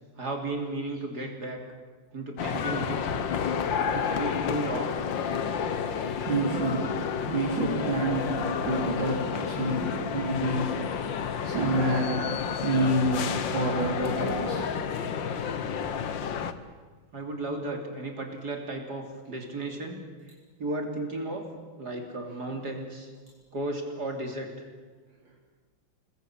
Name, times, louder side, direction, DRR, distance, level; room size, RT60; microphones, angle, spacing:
voice 1, 0.2-1.6 2.1-3.4 3.9-5.0 17.1-20.0 20.6-21.5 21.8-23.1 23.5-24.5, right 2 dB, 55° right, 3 dB, 3.6 m, -34 dB
sound 1, 2.4-16.5, left 7 dB, 70° left, 2.0 m, -30 dB
voice 2, 6.2-6.9 7.3-11.1 11.4-14.8 15.3-15.9, right 1 dB, 70° right, -3 dB, 4.7 m, -29 dB
28.5 x 21.0 x 9.0 m, 1.4 s
omnidirectional pair, 2.1 m